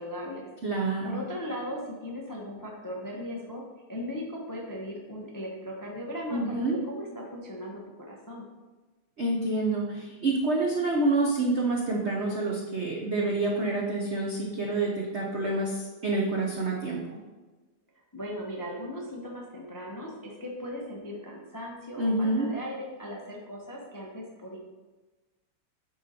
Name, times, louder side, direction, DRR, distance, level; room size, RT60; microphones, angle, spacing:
voice 1, 0.0-0.5 1.0-3.6 3.9-8.4 18.1-24.6, equal, 30° left, -2 dB, 0.3 m, -38 dB
voice 2, 0.6-1.2 6.3-6.8 9.2-17.2 22.0-22.5, right 2 dB, 65° right, -2 dB, 0.6 m, -27 dB
9.8 x 3.9 x 4.3 m, 1.2 s
omnidirectional pair, 2.4 m